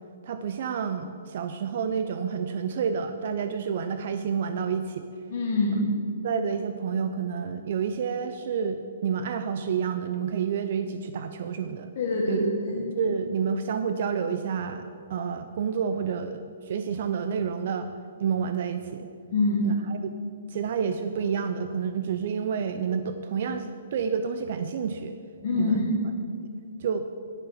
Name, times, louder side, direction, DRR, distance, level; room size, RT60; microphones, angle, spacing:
voice 1, 0.2-5.1 6.2-11.9 12.3-12.4 12.8-17.9 18.2-19.1 19.6-20.1 20.5-25.2 25.5-25.8 26.8-27.1, right 6 dB, 50° right, 9 dB, 0.5 m, -29 dB
voice 2, 5.3-5.9 11.9-12.8 19.3-19.7 25.4-25.9, left 2 dB, 50° left, -3 dB, 1.7 m, -25 dB
9.8 x 6.3 x 7.3 m, 2.4 s
hypercardioid pair, 165°, 0 cm